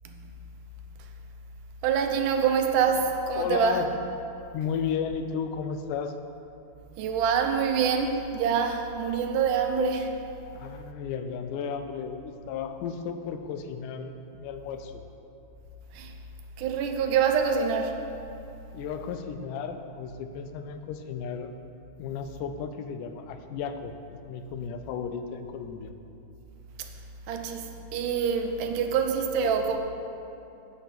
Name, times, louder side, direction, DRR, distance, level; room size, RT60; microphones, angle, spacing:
voice 1, 0.0-0.4 1.0-1.1 1.8-3.8 7.0-10.2 15.9-16.2 16.6-18.0 26.8-26.9 27.3-29.8, right 6 dB, 80° right, 5 dB, 2.2 m, -26 dB
voice 2, 3.4-3.9 4.5-6.1 10.5-15.0 18.7-21.5 22.0-25.9, left 7 dB, 85° left, 8 dB, 2.1 m, -34 dB
9.1 x 5.2 x 7.4 m, 2.9 s
omnidirectional pair, 3.7 m